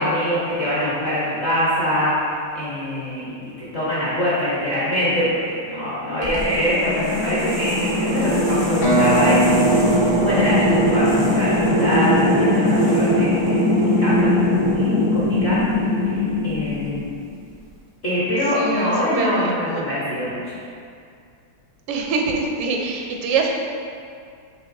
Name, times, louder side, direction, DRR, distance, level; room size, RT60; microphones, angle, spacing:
voice 1, 0.0-2.1 2.5-3.2 3.6-15.6 16.0-17.0 18.0-20.6, left 1 dB, 50° left, -9 dB, 0.8 m, -24 dB
sound 1, 6.2-17.3, left 1 dB, 45° right, 0.5 m, -20 dB
sound 2, 8.8-12.6, right 3 dB, 70° left, 2.0 m, -23 dB
voice 2, 18.5-19.8 21.9-23.5, right 4 dB, 85° right, 1 dB, 1.5 m, -25 dB
6.8 x 3.0 x 2.5 m, 2.3 s
omnidirectional pair, 2.4 m